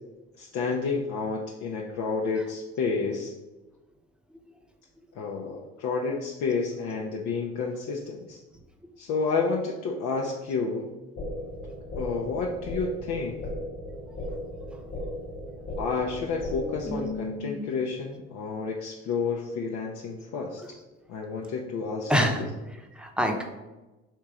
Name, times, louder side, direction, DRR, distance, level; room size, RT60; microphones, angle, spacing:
voice 1, 0.4-3.3 5.1-8.4 9.0-10.9 12.0-13.4 15.8-20.6 21.1-22.3, left 4 dB, 75° left, -1 dB, 0.6 m, -30 dB
sound 1, 11.2-17.2, equal, 50° left, 1.0 m, -36 dB
voice 2, 16.6-17.6 20.6-20.7 22.1-23.4, equal, 5° right, 3 dB, 0.7 m, -29 dB
3.6 x 2.9 x 4.8 m, 1.1 s
supercardioid pair, 75°, 30 cm